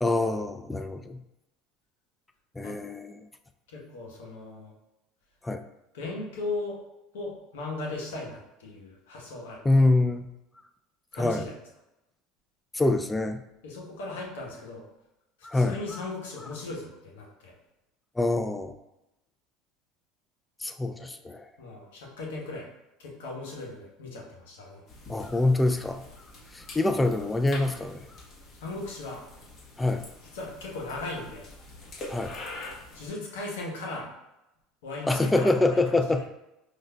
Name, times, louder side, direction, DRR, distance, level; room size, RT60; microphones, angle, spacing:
voice 1, 0.0-1.2 2.6-3.2 5.4-5.6 9.6-10.3 11.1-11.5 12.7-13.4 15.4-15.8 18.2-18.7 20.6-21.4 25.1-26.0 26.5-28.0 29.8-30.0 32.1-32.4 35.1-36.3, left 2 dB, 10° left, 7 dB, 0.3 m, -25 dB
voice 2, 3.7-4.7 5.9-6.8 7.1-9.8 11.1-11.5 13.6-14.9 15.5-17.5 21.0-21.1 21.6-22.7 23.0-24.8 28.6-29.2 30.3-31.5 32.9-34.1 34.8-35.8, left 2 dB, 85° left, -2 dB, 1.0 m, -37 dB
sound 1, 24.9-33.1, left 2 dB, 45° left, 1.1 m, -45 dB
4.9 x 2.5 x 2.2 m, 0.92 s
supercardioid pair, 95°, 0 cm